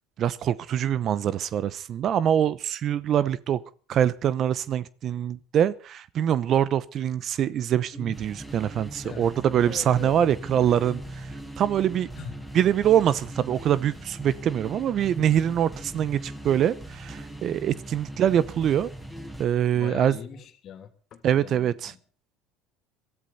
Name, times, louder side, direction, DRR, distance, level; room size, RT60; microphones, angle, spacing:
voice 1, 0.2-3.6 3.9-11.0 11.6-12.1 12.5-18.9 19.4-20.2 21.2-21.9, right 10 dB, 50° right, 0.8 m, -24 dB
sound 1, 7.9-19.4, right 1 dB, 10° right, 5.8 m, -40 dB
voice 2, 9.6-10.1 10.6-10.8 12.1-12.4 19.7-22.0, left 8 dB, 50° left, 3.0 m, -41 dB
22.5 x 13.5 x 4.2 m
supercardioid pair, 100°, 0 cm